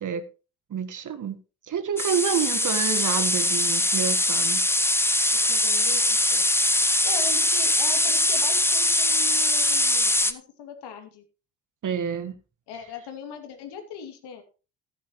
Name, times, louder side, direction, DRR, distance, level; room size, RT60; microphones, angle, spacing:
voice 1, 0.7-1.4 1.6-4.6 11.8-12.3, right 7 dB, 40° right, 1.6 m, -28 dB
sound 1, 2.0-10.3, left 1 dB, 5° left, 1.1 m, -22 dB
voice 2, 5.4-11.2 12.7-14.4, left 6 dB, 55° left, 2.7 m, -40 dB
14.0 x 9.9 x 3.1 m
hypercardioid pair, 55°, 46 cm